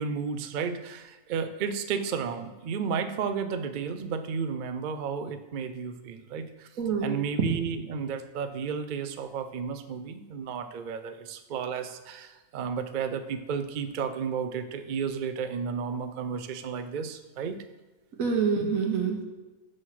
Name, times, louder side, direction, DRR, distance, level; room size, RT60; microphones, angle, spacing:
voice 1, 0.0-6.7 7.0-17.6, right 6 dB, 65° right, 7 dB, 0.5 m, -32 dB
voice 2, 6.8-7.1 18.2-19.2, right 5 dB, 80° right, 3 dB, 1.4 m, -26 dB
6.3 x 3.8 x 5.8 m, 1.2 s
omnidirectional pair, 1.4 m